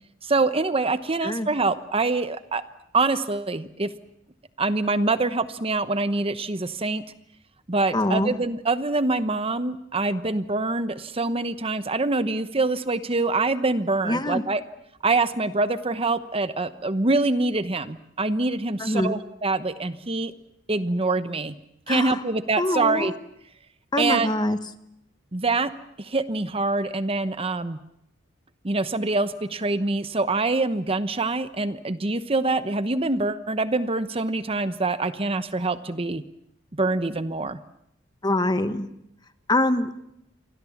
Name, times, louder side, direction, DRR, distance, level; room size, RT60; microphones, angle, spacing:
voice 1, 0.2-2.6 2.9-3.9 4.6-7.0 7.7-14.6 15.0-20.3 20.7-21.6 21.9-23.1 24.0-24.3 25.3-25.7 26.0-27.8 28.6-36.2 36.7-37.6, right 3 dB, 30° right, 12 dB, 1.0 m, -25 dB
voice 2, 7.9-8.3 14.0-14.4 18.8-19.2 21.9-22.2 22.6-23.1 23.9-24.6 38.2-38.9 39.5-39.9, left 1 dB, 20° left, 11 dB, 1.4 m, -24 dB
29.0 x 24.0 x 7.3 m, 0.79 s
head